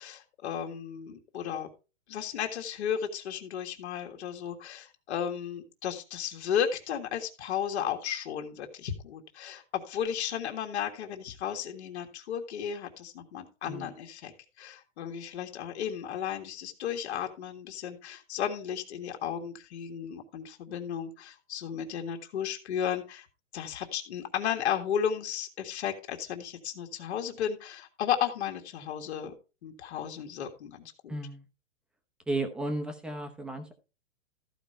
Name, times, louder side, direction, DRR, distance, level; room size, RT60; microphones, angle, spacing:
voice 1, 0.0-1.7 2.1-14.3 14.6-23.3 23.5-29.3 29.6-31.2, left 9 dB, 60° left, 3 dB, 1.9 m, -34 dB
voice 2, 31.1-31.5 32.3-33.7, right 2 dB, ahead, 6 dB, 0.8 m, -34 dB
14.0 x 5.1 x 4.3 m, 0.31 s
hypercardioid pair, 155°, 37 cm